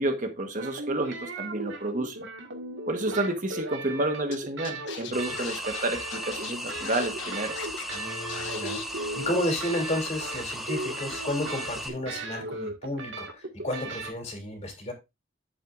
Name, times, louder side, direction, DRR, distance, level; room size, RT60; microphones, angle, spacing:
voice 1, 0.0-2.3 2.9-7.5, right 2 dB, 40° right, 1.2 m, -30 dB
sound 1, 0.5-14.1, right 2 dB, 70° right, 1.8 m, -37 dB
Scratching (performance technique), 4.3-4.4 4.6-8.0 8.3-8.8, left 6 dB, 65° left, 1.3 m, -39 dB
sound 2, 5.1-11.9, equal, ahead, 1.2 m, -37 dB
voice 2, 7.9-14.9, left 1 dB, 35° left, 2.9 m, -32 dB
10.0 x 7.8 x 2.5 m
head